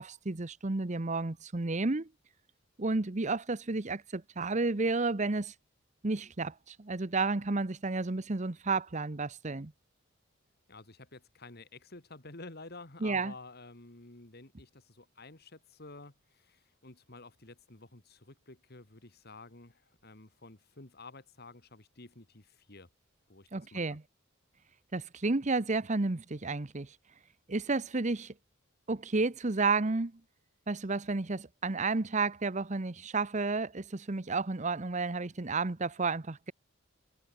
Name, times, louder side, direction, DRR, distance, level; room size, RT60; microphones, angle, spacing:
voice 1, 0.0-2.1 2.8-5.5 6.0-9.7 13.0-13.3 23.5-24.0 24.9-26.9 27.5-28.3 28.9-30.1 30.7-36.5, right 3 dB, 35° right, 0.9 m, -31 dB
voice 2, 10.7-22.9 23.3-24.0, left 3 dB, 50° left, 2.5 m, -51 dB
head